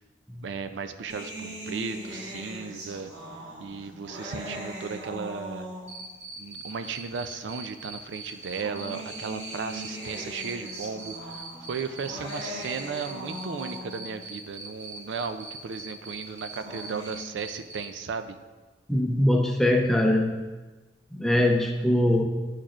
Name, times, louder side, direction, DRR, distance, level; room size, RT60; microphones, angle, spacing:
voice 1, 0.4-3.1 3.6-5.7 6.4-11.1 11.7-18.4, right 5 dB, 85° right, 9 dB, 0.4 m, -35 dB
sound 1, 1.1-6.2 7.1-7.2 8.3-14.2 16.3-17.1, equal, 65° right, 1.4 m, -39 dB
Cricket, 5.9-17.8, right 4 dB, 40° right, 1.3 m, -41 dB
voice 2, 18.9-20.4 21.1-22.2, left 1 dB, ahead, 2 dB, 0.5 m, -22 dB
10.0 x 4.3 x 2.4 m, 1.2 s
head